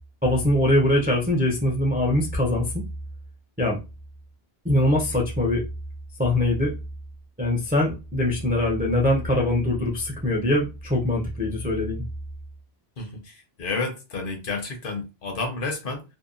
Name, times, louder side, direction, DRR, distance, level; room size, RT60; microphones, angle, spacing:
voice 1, 0.2-2.8 3.6-3.8 4.6-5.6 6.2-6.7 7.4-12.0, left 1 dB, 15° right, 0.3 m, -22 dB
voice 2, 13.0-16.0, left 3 dB, 60° left, 0.8 m, -31 dB
2.8 x 2.1 x 2.4 m
omnidirectional pair, 1.1 m